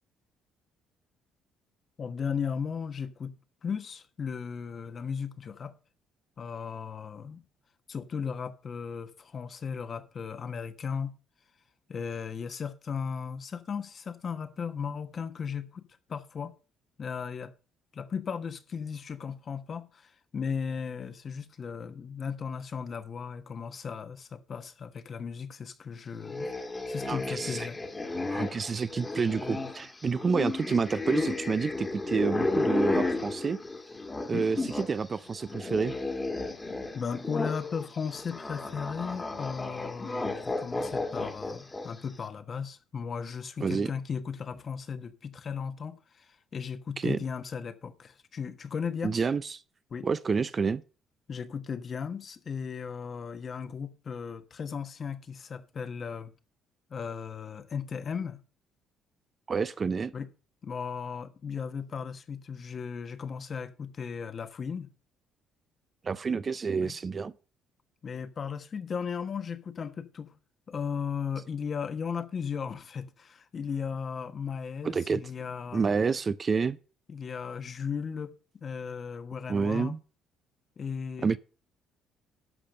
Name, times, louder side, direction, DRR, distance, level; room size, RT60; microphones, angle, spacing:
voice 1, 2.0-3.3 3.6-5.7 6.4-7.4 7.9-11.1 11.9-16.5 17.0-17.5 17.9-26.5 26.9-27.8 34.3-34.5 36.9-49.3 49.9-50.1 51.3-56.3 56.9-58.4 60.1-60.3 60.6-64.9 66.8-66.9 68.0-70.3 70.7-76.0 77.1-78.3 78.6-79.9 80.8-81.3, left 6 dB, 40° left, 1.2 m, -36 dB
sound 1, 26.2-35.0 35.2-42.0, left 2 dB, 20° left, 1.7 m, -33 dB
voice 2, 27.1-27.7 28.3-33.6 34.3-35.9 43.6-43.9 47.0-47.2 49.0-49.6 50.0-50.8 59.5-60.1 66.0-67.3 74.8-75.2 75.7-76.8 79.5-80.0 81.2-81.4, right 5 dB, 30° right, 0.5 m, -29 dB
12.5 x 5.1 x 6.4 m
cardioid pair, 110°, 0 cm